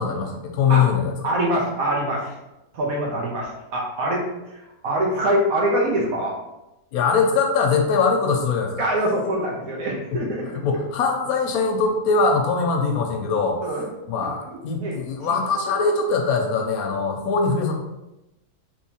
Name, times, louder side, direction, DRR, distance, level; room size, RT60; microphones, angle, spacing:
voice 1, 0.0-1.1 6.9-8.9 10.1-10.2 10.6-13.7 14.1-17.7, left 4 dB, 75° left, 2 dB, 1.0 m, -22 dB
voice 2, 1.2-2.3 2.7-4.2 4.8-6.3 8.8-10.6 13.6-13.9 14.5-14.9 15.2-15.3, right 1 dB, 70° right, -1 dB, 1.2 m, -24 dB
3.6 x 3.0 x 2.8 m, 0.96 s
omnidirectional pair, 1.6 m